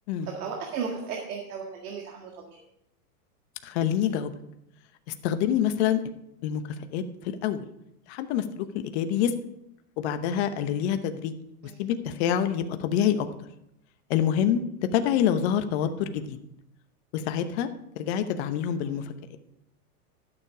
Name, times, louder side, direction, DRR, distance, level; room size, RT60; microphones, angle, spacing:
voice 1, 0.2-2.6 11.6-11.8 18.8-18.9, right 6 dB, 65° right, 0 dB, 1.9 m, -35 dB
voice 2, 3.6-4.3 5.1-6.0 6.4-6.6 6.9-7.6 8.1-9.3 10.0-11.3 11.8-13.3 14.1-14.6 14.9-16.4 17.1-17.7 18.0-19.4, left 9 dB, 45° left, 9 dB, 0.9 m, -26 dB
12.5 x 6.8 x 4.9 m, 0.81 s
hypercardioid pair, 140°, 46 cm